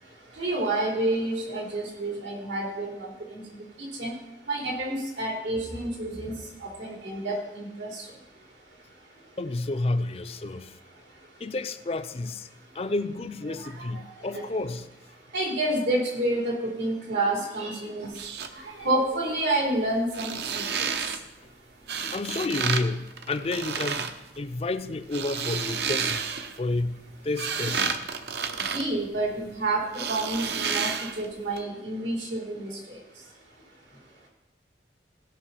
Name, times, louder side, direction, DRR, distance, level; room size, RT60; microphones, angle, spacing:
voice 1, 0.4-2.9 3.3-3.4 3.8-4.1 4.5-6.3 6.6-8.0 14.3-14.4 15.3-18.1 18.6-20.9 28.7-30.9 31.2-32.7, right 2 dB, 90° right, -2 dB, 3.7 m, -29 dB
voice 2, 9.4-10.8 11.4-12.5 12.7-14.9 22.1-26.2 26.6-27.0 27.2-28.0, left 2 dB, 35° left, 11 dB, 0.4 m, -30 dB
sound 1, 18.0-18.5 20.0-21.2 21.9-22.8 23.1-24.1 24.9-26.6 27.1-29.5 29.9-31.3 31.6-31.7, right 6 dB, 70° right, 0.8 m, -30 dB
16.0 x 5.6 x 5.6 m, 0.94 s
head